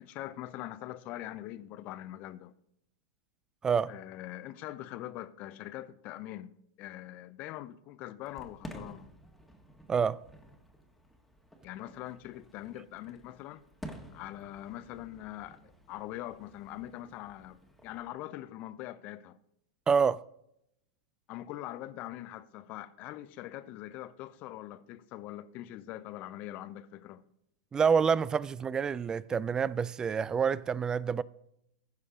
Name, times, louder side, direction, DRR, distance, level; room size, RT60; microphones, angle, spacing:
voice 1, 0.0-2.5 3.9-9.1 11.6-13.6 14.1-19.4 21.3-27.2, left 14 dB, 45° left, 0.7 m, -43 dB
voice 2, 3.6-3.9 9.9-10.2 19.9-20.2 27.7-31.2, right 6 dB, 20° right, 0.3 m, -27 dB
Fireworks, 8.3-18.1, equal, ahead, 1.5 m, -51 dB
15.5 x 6.5 x 3.7 m
hypercardioid pair, 105°, 4 cm